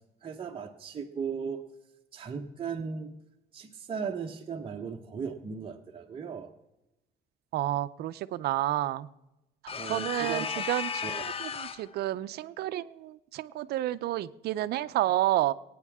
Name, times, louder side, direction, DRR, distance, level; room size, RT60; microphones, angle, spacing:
voice 1, 0.2-1.6 2.1-3.1 3.5-6.5 9.7-10.6 11.0-11.2, right 6 dB, 30° right, 1 dB, 1.1 m, -37 dB
voice 2, 7.5-9.1 9.9-10.9 11.2-15.5, right 14 dB, 75° right, 15 dB, 0.6 m, -30 dB
sound 1, 9.7-11.9, left 6 dB, 35° left, 0.7 m, -34 dB
24.0 x 9.5 x 3.6 m, 0.95 s
cardioid pair, 110°, 17 cm